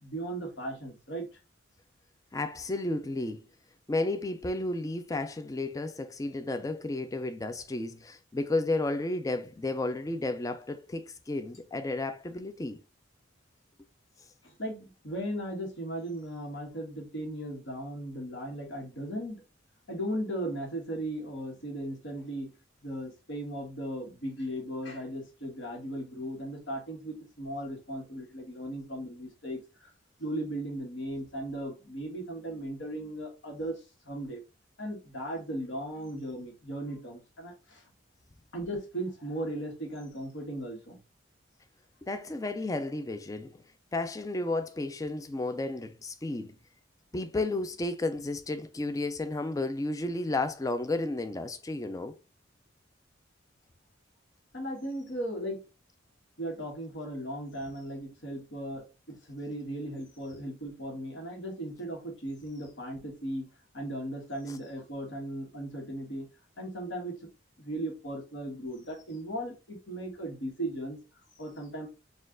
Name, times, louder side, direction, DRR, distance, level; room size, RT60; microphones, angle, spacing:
voice 1, 0.0-1.3 14.4-19.4 19.9-22.5 22.8-29.9 30.2-34.4 34.8-37.8 38.5-41.0 54.5-55.6 56.4-66.3 66.6-67.1 67.6-71.0 71.4-71.9, right 1 dB, 65° left, 1.4 m, -37 dB
voice 2, 2.3-3.4 3.9-12.8 42.0-43.6 43.9-46.6 47.1-52.1 64.5-64.6, left 2 dB, 15° left, 0.3 m, -32 dB
4.2 x 2.3 x 3.7 m
head